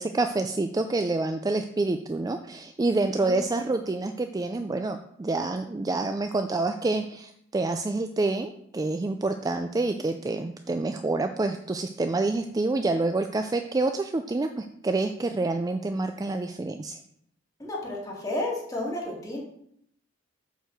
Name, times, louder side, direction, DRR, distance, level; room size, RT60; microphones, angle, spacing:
voice 1, 0.0-17.0, right 2 dB, 20° right, 7 dB, 0.3 m, -27 dB
voice 2, 3.2-3.7 17.6-19.4, left 1 dB, 20° left, -4 dB, 2.5 m, -32 dB
8.0 x 4.6 x 6.4 m, 0.72 s
head